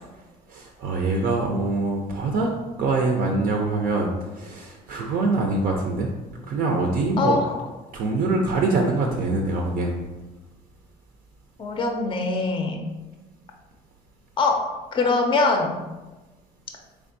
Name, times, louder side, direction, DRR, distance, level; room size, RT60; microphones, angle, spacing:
voice 1, 0.5-2.5 2.8-6.1 6.5-7.4 7.9-9.9, right 3 dB, 60° right, 1 dB, 0.5 m, -24 dB
voice 2, 7.2-7.7 11.6-12.8 14.4-15.8, left 3 dB, 30° left, 3 dB, 0.5 m, -23 dB
3.4 x 3.4 x 2.6 m, 1.2 s
cardioid pair, 110°, 17 cm